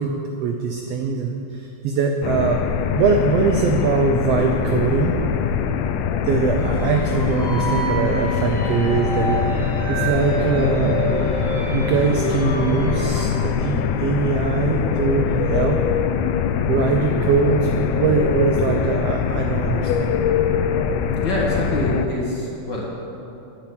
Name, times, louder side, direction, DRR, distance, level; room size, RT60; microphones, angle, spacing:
voice 1, 0.0-2.6 2.9-5.1 6.2-9.4 9.9-11.0 11.7-15.8 16.7-20.1, right 5 dB, 90° right, 3 dB, 1.3 m, -22 dB
sound 1, 2.2-22.1, left 7 dB, 85° left, 2.0 m, -23 dB
sound 2, 6.6-13.2, right 3 dB, 70° right, 0.5 m, -29 dB
voice 2, 21.2-22.9, equal, 45° left, -4 dB, 1.6 m, -25 dB
10.5 x 5.8 x 8.5 m, 2.8 s
omnidirectional pair, 3.5 m